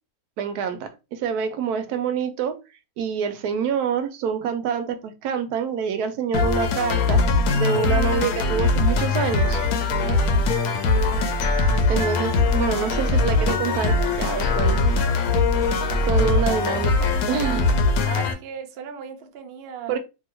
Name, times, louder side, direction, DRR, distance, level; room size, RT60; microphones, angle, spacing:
voice 1, 0.4-2.6 3.0-7.2 7.5-9.6 11.9-15.1 16.0-17.7 19.9-20.0, right 7 dB, 80° right, 1.1 m, -26 dB
sound 1, 6.3-18.3, left 3 dB, 75° left, 1.1 m, -21 dB
voice 2, 10.0-10.5 18.0-20.0, right 8 dB, 65° right, 0.6 m, -36 dB
2.7 x 2.7 x 2.9 m
omnidirectional pair, 1.6 m